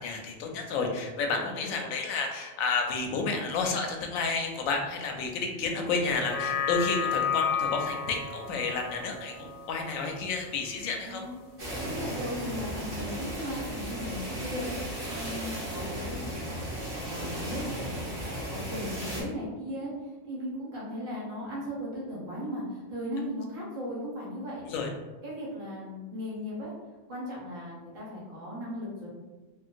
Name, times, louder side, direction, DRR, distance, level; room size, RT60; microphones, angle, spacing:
voice 1, 0.0-9.3 9.7-11.2 24.7-24.9, left 4 dB, 85° left, 2 dB, 1.0 m, -31 dB
voice 2, 1.4-1.7 11.0-11.4 11.8-14.7 15.0-24.6 25.2-26.7 27.1-29.1, equal, 75° right, -6 dB, 1.3 m, -37 dB
sound 1, 6.0-10.6 11.0-11.1, left 7 dB, 55° left, 0.7 m, -32 dB
sound 2, 11.6-19.2, right 1 dB, 45° right, 1.1 m, -35 dB
3.7 x 2.2 x 2.5 m, 1.2 s
omnidirectional pair, 1.4 m